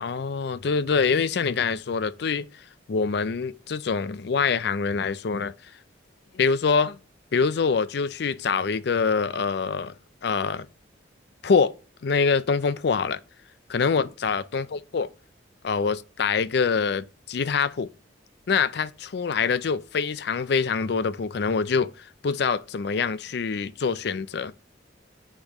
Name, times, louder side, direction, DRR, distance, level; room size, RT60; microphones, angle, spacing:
voice 1, 0.0-2.5 2.9-5.5 6.3-7.0 7.3-9.9 10.2-10.7 11.4-11.7 12.0-13.2 13.7-15.1 15.6-17.9 18.5-21.9 22.2-24.5, left 5 dB, 60° left, 0.4 m, -25 dB
8.3 x 5.0 x 3.0 m
head